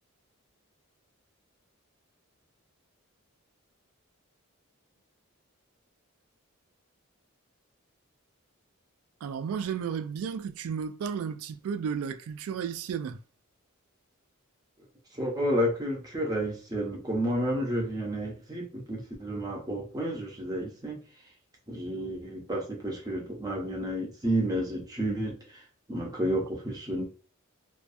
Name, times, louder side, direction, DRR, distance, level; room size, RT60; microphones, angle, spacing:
voice 1, 9.2-13.2, right 7 dB, 80° right, 0.3 m, -33 dB
voice 2, 15.1-21.0 21.7-25.6 25.9-27.0, equal, 15° right, 0.6 m, -31 dB
2.4 x 2.2 x 2.5 m
head